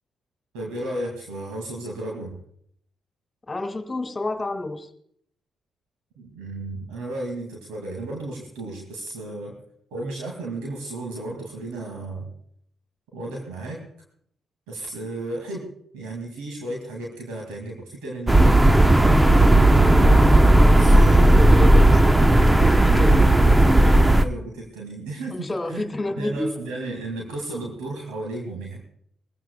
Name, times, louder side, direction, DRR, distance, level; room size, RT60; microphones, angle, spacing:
voice 1, 0.5-2.3 6.2-9.5 9.9-12.3 13.1-13.8 14.7-15.7 15.9-18.6 19.7-21.3 24.2-25.8 26.2-28.8, right 2 dB, 85° right, -1 dB, 2.4 m, -34 dB
voice 2, 3.5-4.9 19.7-20.2 20.5-20.7 20.9-22.0 22.6-24.0 25.3-26.6, left 2 dB, 30° left, 6 dB, 2.3 m, -30 dB
sound 1, 18.3-24.2, right 1 dB, 15° right, 0.9 m, -14 dB
21.5 x 16.0 x 2.4 m, 0.66 s
hypercardioid pair, 45°, 0 cm